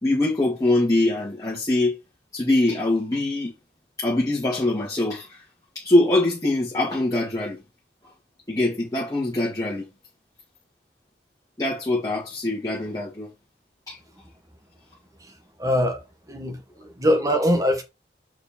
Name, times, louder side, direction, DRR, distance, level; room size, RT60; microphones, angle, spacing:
voice 1, 0.0-2.0 2.3-3.5 4.0-5.4 5.8-7.6 8.5-9.8 11.6-13.3 13.9-14.0, left 2 dB, 20° left, 2.1 m, -23 dB
voice 2, 15.6-17.8, equal, 20° right, 1.6 m, -23 dB
6.3 x 5.0 x 4.4 m
head